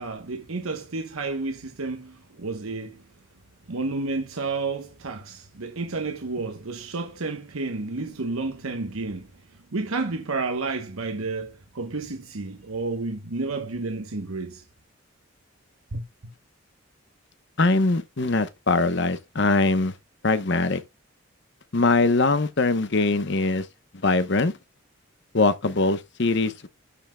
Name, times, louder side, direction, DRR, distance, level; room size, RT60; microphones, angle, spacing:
voice 1, 0.0-3.0 3.7-9.3 9.7-14.6 15.9-16.1, right 3 dB, 80° right, 1.0 m, -31 dB
voice 2, 17.6-19.9 20.2-20.8 21.7-23.7 24.0-24.5 25.3-26.7, left 3 dB, 55° left, 0.9 m, -22 dB
12.5 x 5.7 x 2.2 m
head